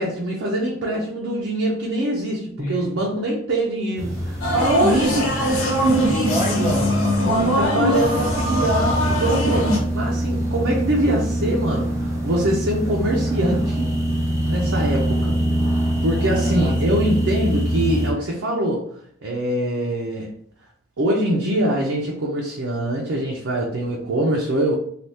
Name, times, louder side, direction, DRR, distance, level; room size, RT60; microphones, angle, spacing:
voice 1, 0.0-5.9 7.4-13.9 14.4-15.4 16.0-18.9 19.2-20.3 21.0-24.8, right 1 dB, 65° right, -2 dB, 0.5 m, -23 dB
sound 1, 4.0-7.3 7.9-18.1, right 1 dB, 15° right, 0.6 m, -24 dB
sound 2, 4.4-9.8, equal, 70° left, 1.0 m, -21 dB
voice 2, 5.8-7.0 16.3-16.9, equal, 25° left, -7 dB, 0.9 m, -28 dB
3.4 x 2.4 x 2.7 m, 0.65 s
head